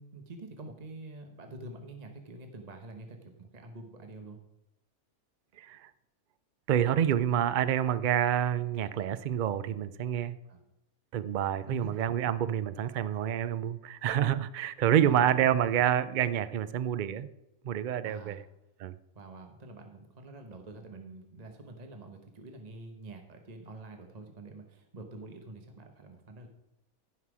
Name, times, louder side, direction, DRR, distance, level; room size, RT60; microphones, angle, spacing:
voice 1, 0.0-4.4 10.5-10.6 11.7-11.9 15.0-15.2 18.0-18.4 19.1-26.5, right 2 dB, 30° right, 4 dB, 1.1 m, -46 dB
voice 2, 5.6-5.9 6.7-10.4 11.1-17.3 17.6-18.4 18.8-18.9, right 10 dB, 85° right, 13 dB, 0.4 m, -28 dB
15.5 x 5.8 x 4.8 m, 0.87 s
omnidirectional pair, 1.5 m